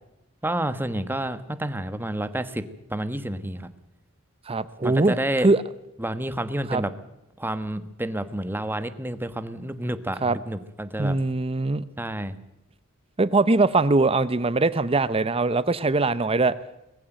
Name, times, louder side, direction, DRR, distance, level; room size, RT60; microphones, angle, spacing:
voice 1, 0.4-3.7 4.8-5.5 6.0-6.9 7.4-11.2 12.0-12.4, right 1 dB, 10° right, 11 dB, 1.3 m, -29 dB
voice 2, 4.5-5.2 5.4-5.6 6.7-6.8 10.2-10.4 11.0-11.8 13.2-16.6, right 3 dB, 25° right, 16 dB, 0.7 m, -21 dB
21.0 x 15.5 x 9.1 m, 0.89 s
head